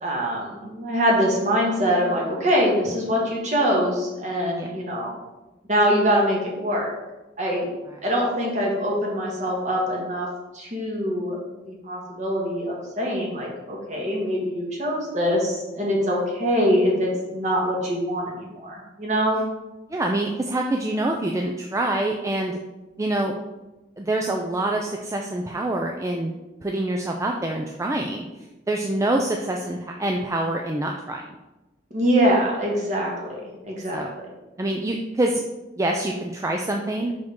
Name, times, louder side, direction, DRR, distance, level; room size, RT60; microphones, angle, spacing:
voice 1, 0.0-5.1 5.7-6.9 7.4-7.7 8.0-10.3 10.5-11.3 11.6-19.4 31.9-33.4 33.7-34.0, equal, 40° right, -2 dB, 1.6 m, -23 dB
voice 2, 19.9-22.6 23.0-23.3 24.0-26.4 26.6-28.3 28.7-31.2 33.9-34.1 34.6-35.4 35.8-37.1, right 1 dB, 15° right, 2 dB, 0.3 m, -25 dB
5.8 x 4.9 x 3.7 m, 1.1 s
head